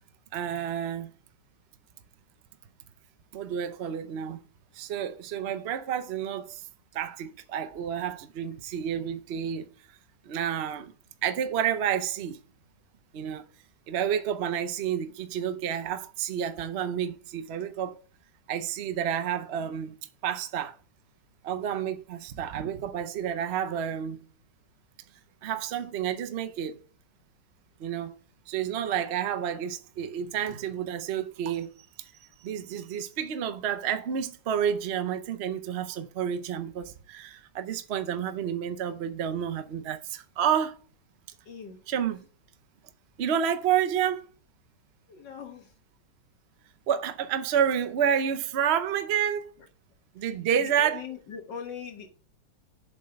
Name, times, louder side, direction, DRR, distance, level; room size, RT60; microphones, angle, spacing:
voice 1, 0.3-1.1 3.3-4.4 4.7-6.7 6.9-9.7 10.2-10.9 11.2-12.4 13.1-13.4 13.9-18.0 18.5-20.0 20.2-20.8 21.4-24.3 25.4-26.8 27.8-28.1 28.5-40.8 41.9-42.2 43.2-44.3 46.9-49.5 50.1-51.1, right 8 dB, 75° right, 0.6 m, -30 dB
voice 2, 41.5-41.8 45.1-45.7 50.6-52.1, left 6 dB, 65° left, 2.0 m, -40 dB
7.2 x 4.6 x 6.4 m
omnidirectional pair, 2.1 m